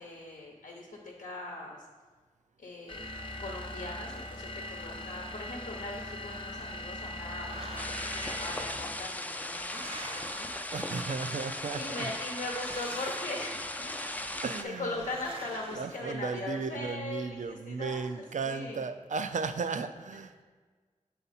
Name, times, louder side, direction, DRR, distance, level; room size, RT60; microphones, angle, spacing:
voice 1, 0.0-1.8 2.6-3.1 3.4-10.5 11.7-14.2 14.6-18.8, left 2 dB, 80° left, -1 dB, 0.8 m, -40 dB
sound 1, 2.9-9.1, left 1 dB, 40° left, 0.7 m, -40 dB
sound 2, 7.0-8.3 9.1-11.3 12.3-13.8 14.8-16.7, right 2 dB, 45° right, 0.8 m, -48 dB
sound 3, 7.8-14.6, left 1 dB, 10° left, 0.4 m, -37 dB
voice 2, 10.7-12.1 14.4-15.2 15.7-20.4, right 5 dB, 65° right, 10 dB, 0.4 m, -35 dB
7.1 x 4.1 x 4.1 m, 1.5 s
wide cardioid pair, 60°, 13 cm